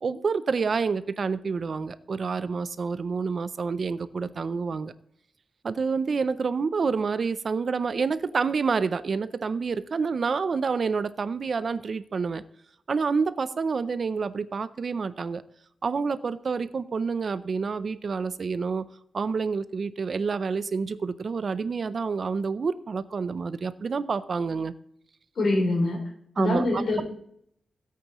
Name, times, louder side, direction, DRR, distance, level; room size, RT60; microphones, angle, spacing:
voice 1, 0.0-4.9 5.6-12.4 12.9-15.4 15.8-18.8 19.1-24.7 26.4-26.6, right 5 dB, 45° right, 15 dB, 0.5 m, -28 dB
voice 2, 25.4-26.0 26.4-27.0, left 2 dB, 55° left, 0 dB, 3.7 m, -24 dB
17.0 x 8.4 x 3.0 m, 0.70 s
wide cardioid pair, 155°, 0 cm